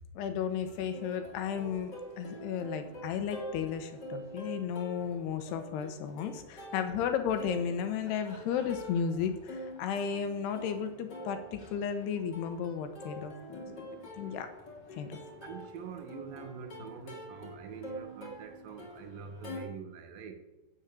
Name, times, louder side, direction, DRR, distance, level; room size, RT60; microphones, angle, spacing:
voice 1, 0.1-13.9 14.2-14.5 15.0-15.2, left 7 dB, 85° left, 8 dB, 3.2 m, -34 dB
Plucked string instrument, 0.7-19.6, equal, 30° left, 2.6 m, -46 dB
voice 2, 6.6-7.1 15.4-20.4, right 6 dB, 70° right, 6 dB, 2.7 m, -45 dB
11.5 x 7.2 x 8.3 m, 1.0 s
omnidirectional pair, 4.6 m